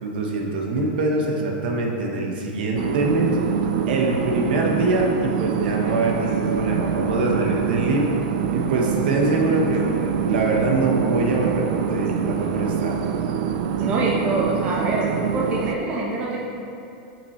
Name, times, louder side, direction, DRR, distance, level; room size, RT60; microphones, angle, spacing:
voice 1, 0.0-3.4 3.9-8.1 8.5-13.0, right 2 dB, 75° right, 0 dB, 1.1 m, -23 dB
sound 1, 2.8-15.7, right 7 dB, 55° right, 0.4 m, -25 dB
voice 2, 13.8-15.1 15.3-16.4, right 2 dB, 25° right, -4 dB, 1.1 m, -25 dB
8.4 x 6.0 x 3.2 m, 2.6 s
supercardioid pair, 160°, 5 cm